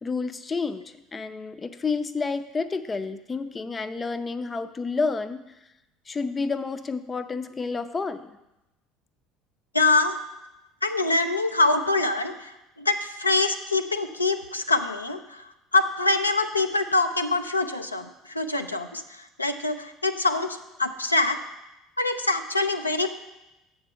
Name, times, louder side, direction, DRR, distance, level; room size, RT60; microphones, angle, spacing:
voice 1, 0.0-5.4 6.1-8.3, left 4 dB, 25° left, 12 dB, 0.5 m, -30 dB
voice 2, 9.7-10.2 10.8-21.4 22.0-23.1, left 2 dB, 90° left, 7 dB, 0.4 m, -25 dB
7.3 x 4.5 x 6.5 m, 0.94 s
figure-of-eight pair, 65°, 0 cm